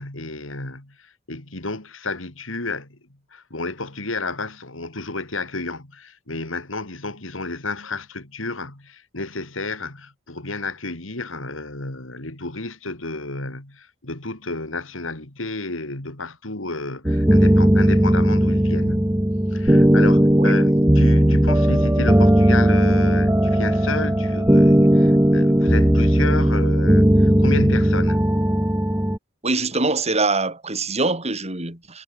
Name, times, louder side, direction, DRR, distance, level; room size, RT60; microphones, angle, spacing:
voice 1, 0.0-3.0 3.3-19.2 19.5-28.2, left 3 dB, 90° left, 3.6 m, -31 dB
sound 1, 17.0-29.2, equal, 10° right, 1.4 m, -17 dB
voice 2, 29.4-32.0, right 3 dB, 35° right, 7.9 m, -23 dB
head